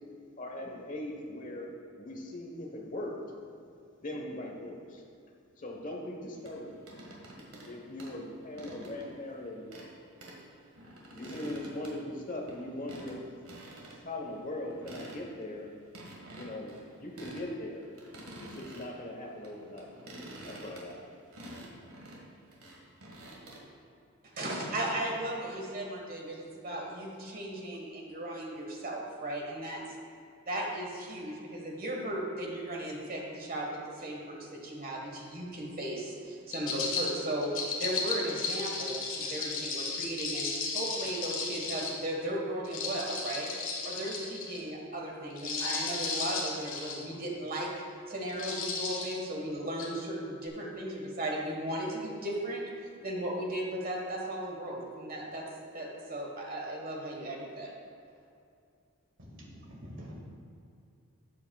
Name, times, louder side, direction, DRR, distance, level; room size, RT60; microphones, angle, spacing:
voice 1, 0.4-1.7 2.0-3.4 4.0-5.0 5.6-6.8 7.6-9.6 11.1-13.3 14.0-15.7 16.3-17.8 18.4-19.9 20.4-21.0, left 1 dB, 35° left, 0 dB, 1.1 m, -40 dB
sound 1, 6.5-7.7 8.0-9.2 9.7-9.9 10.2-10.4 10.7-12.6 12.9-13.2 13.4-14.0 14.3-14.4 14.7-15.4 15.9-17.5 17.7-19.0 19.4-23.6, right 1 dB, 80° right, 1.7 m, -48 dB
voice 2, 24.2-29.8 30.5-37.5 37.8-43.5 43.8-47.7 48.1-55.4 55.7-57.7, right 1 dB, 40° right, -1 dB, 1.5 m, -36 dB
sound 2, 36.5-42.0 42.6-44.6 45.3-47.0 47.5-47.8 48.3-49.2 49.8-49.9, left 4 dB, 65° left, 1.5 m, -35 dB
voice 3, 59.2-60.2, equal, 55° right, -3 dB, 1.9 m, -46 dB
12.5 x 8.4 x 2.3 m, 2.5 s
head